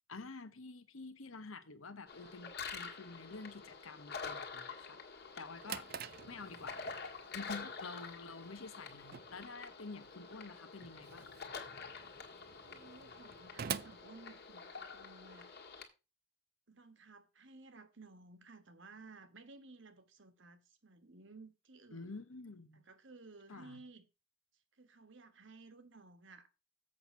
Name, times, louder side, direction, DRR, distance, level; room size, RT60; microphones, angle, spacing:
voice 1, 0.1-5.0 5.4-5.9 6.3-11.3 21.9-22.8 23.5-23.8, left 3 dB, 80° left, 1.1 m, -49 dB
sound 1, 2.1-15.8, left 5 dB, 50° left, 1.8 m, -48 dB
Drawer open or close, 5.3-15.0, right 8 dB, 45° right, 0.5 m, -48 dB
voice 2, 12.6-15.5 16.7-22.2 22.7-24.0 24.5-26.5, right 3 dB, 65° right, 1.3 m, -57 dB
7.8 x 6.3 x 5.5 m
head